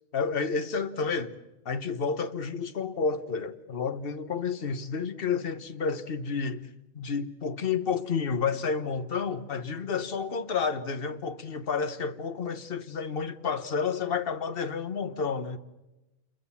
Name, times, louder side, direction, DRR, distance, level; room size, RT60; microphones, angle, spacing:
voice 1, 0.1-1.3 1.6-6.7 6.9-15.6, left 5 dB, 50° left, 1.4 m, -30 dB
27.5 x 22.5 x 7.2 m
omnidirectional pair, 1.2 m